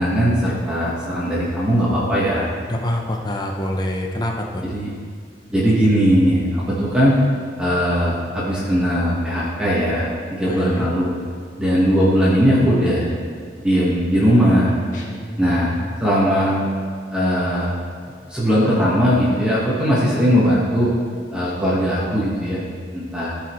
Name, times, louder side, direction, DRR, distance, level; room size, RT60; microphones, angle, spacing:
voice 1, 0.0-2.5 4.6-4.9 5.5-7.2 7.6-11.1 11.6-13.1 13.6-14.7 15.4-15.7 16.0-16.5 17.1-17.7 18.3-20.9 21.3-22.6 22.9-23.4, equal, 5° right, -8 dB, 1.3 m, -19 dB
voice 2, 2.7-4.6 10.5-10.9, left 1 dB, 20° left, 1 dB, 0.7 m, -25 dB
sound 1, 14.9-16.3, left 1 dB, 40° left, 1.1 m, -35 dB
14.5 x 4.9 x 3.1 m, 2.1 s
head